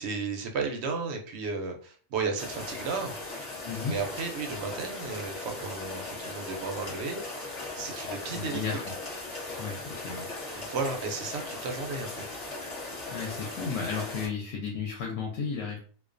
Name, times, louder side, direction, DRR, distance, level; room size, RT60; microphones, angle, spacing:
voice 1, 0.0-3.5 3.8-7.2 7.7-8.6 10.5-12.3, right 4 dB, 65° right, 4 dB, 0.7 m, -34 dB
sound 1, 2.4-14.3, left 2 dB, 35° left, 0.7 m, -38 dB
voice 2, 3.6-4.0 8.3-8.9 9.6-10.3 13.1-15.8, left 5 dB, 70° left, 0 dB, 0.9 m, -33 dB
2.3 x 2.2 x 2.4 m, 0.43 s
omnidirectional pair, 1.4 m